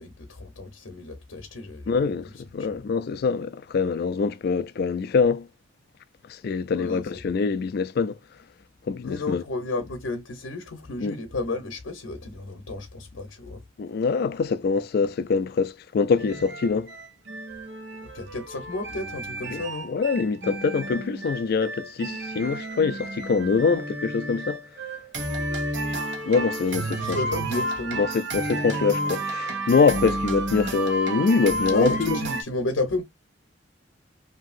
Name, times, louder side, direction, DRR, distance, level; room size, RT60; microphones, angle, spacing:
voice 1, 0.0-2.9 6.7-7.2 9.0-13.6 18.1-19.9 26.7-28.0 31.7-33.0, left 2 dB, 75° left, 0.7 m, -32 dB
voice 2, 1.9-5.5 6.3-8.2 8.9-9.4 11.0-11.1 13.8-16.9 19.5-19.6 19.9-24.6 26.2-27.2 28.0-31.9, left 5 dB, 50° left, 0.3 m, -24 dB
sound 1, 16.2-32.4, right 1 dB, 65° right, 0.8 m, -31 dB
2.9 x 2.6 x 2.4 m
head